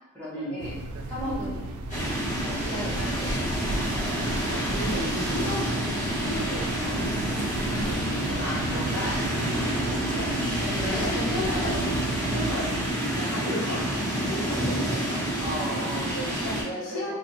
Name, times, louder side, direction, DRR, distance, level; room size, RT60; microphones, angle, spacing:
voice 1, 0.1-0.7 1.1-1.8 2.4-3.8 8.4-10.4 10.7-11.6 12.7-13.5 15.4-17.1, equal, 5° left, -10 dB, 0.9 m, -36 dB
sound 1, 0.6-12.9, right 2 dB, 80° right, 0.3 m, -34 dB
sound 2, 1.9-16.6, equal, 35° left, 1.1 m, -28 dB
voice 2, 4.4-8.5 10.2-13.8 14.3-15.2 15.8-16.5 16.8-17.1, equal, 80° left, -7 dB, 1.1 m, -34 dB
2.5 x 2.3 x 2.9 m, 0.97 s
head